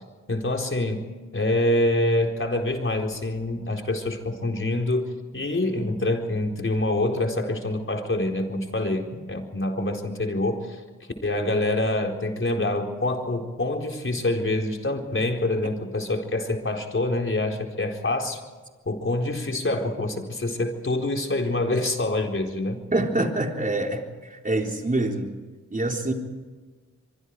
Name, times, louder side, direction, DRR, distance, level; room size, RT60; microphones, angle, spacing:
voice 1, 0.3-1.0 1.3-10.8 11.2-18.4 18.9-22.8, left 2 dB, 40° left, 3 dB, 4.3 m, -26 dB
voice 2, 22.9-25.3 25.7-26.1, right 2 dB, 25° right, 2 dB, 3.9 m, -25 dB
24.5 x 24.0 x 4.9 m, 1.4 s
cardioid pair, 70°, 32 cm